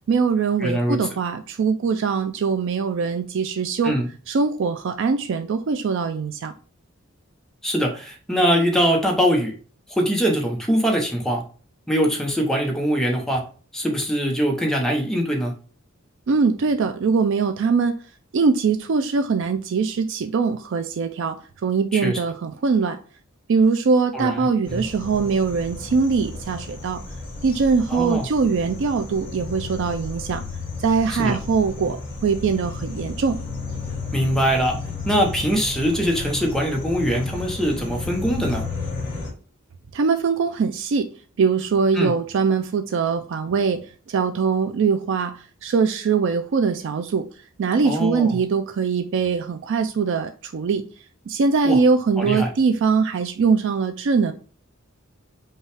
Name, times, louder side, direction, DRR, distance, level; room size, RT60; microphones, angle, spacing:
voice 1, 0.1-4.0 4.3-6.5 16.3-17.9 18.3-21.4 21.6-23.0 23.5-27.0 27.4-30.4 30.8-33.4 39.9-41.1 41.4-43.8 44.1-45.3 45.6-47.3 47.6-50.8 51.3-54.3, right 5 dB, 60° right, 7 dB, 0.4 m, -22 dB
voice 2, 0.6-1.0 3.8-4.1 7.6-9.5 9.9-11.4 11.9-13.4 13.7-15.5 21.9-22.2 24.1-24.8 27.9-28.2 31.1-31.4 34.1-34.8 35.0-38.6 41.9-42.1 47.8-48.4 51.6-51.8 52.2-52.5, equal, ahead, 0 dB, 0.9 m, -22 dB
sound 1, 24.6-39.3, left 3 dB, 25° left, 1.8 m, -33 dB
5.4 x 2.4 x 3.3 m, 0.38 s
head